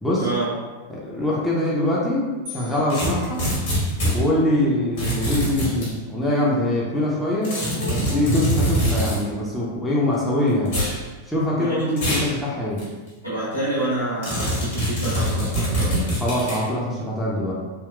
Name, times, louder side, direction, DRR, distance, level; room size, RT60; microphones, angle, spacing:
voice 1, 0.2-0.5 11.5-11.9 13.2-16.0, right 2 dB, 90° right, -11 dB, 1.3 m, -28 dB
voice 2, 0.9-3.5 4.1-7.6 7.9-10.8 11.2-12.8 16.2-17.5, left 1 dB, 5° left, -7 dB, 0.6 m, -23 dB
sound 1, 2.5-4.2, left 5 dB, 55° right, 0.8 m, -43 dB
sound 2, 2.9-4.2 5.0-5.9 7.4-9.2 10.6-11.0 12.0-12.3 12.8-12.9 14.2-16.6, equal, 55° left, 1.4 m, -23 dB
sound 3, 7.3-8.3 10.7-11.1 11.5-12.0 13.2-13.3, left 3 dB, 85° left, 0.5 m, -38 dB
3.6 x 2.3 x 2.3 m, 1.3 s
figure-of-eight pair, 90°, 0 cm